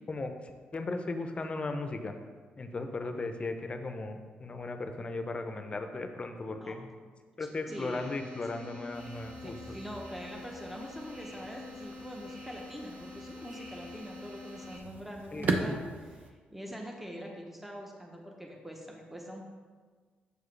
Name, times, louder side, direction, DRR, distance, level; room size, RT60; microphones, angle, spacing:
voice 1, 0.7-2.1 2.6-6.9 7.4-9.8 15.3-15.6, left 3 dB, 35° left, 6 dB, 0.6 m, -36 dB
voice 2, 7.4-8.1 9.4-19.4, equal, 5° right, 0 dB, 0.7 m, -44 dB
sound 1, 7.7-14.8, left 2 dB, 30° right, 1.1 m, -47 dB
sound 2, 8.9-16.3, right 3 dB, 50° right, 0.6 m, -39 dB
6.6 x 4.7 x 3.2 m, 1.5 s
cardioid pair, 85°, 3 cm